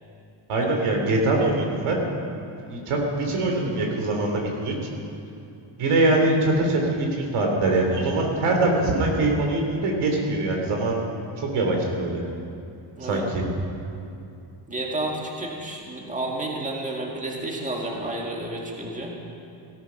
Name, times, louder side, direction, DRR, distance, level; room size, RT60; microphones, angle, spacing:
voice 1, 0.5-2.0 2.6-4.7 5.8-11.0 11.4-12.2 13.0-13.5, right 2 dB, 85° right, 1 dB, 3.3 m, -23 dB
voice 2, 14.7-19.2, right 1 dB, 15° right, -1 dB, 1.9 m, -31 dB
17.5 x 13.5 x 5.8 m, 2.6 s
wide cardioid pair, 145°, 50 cm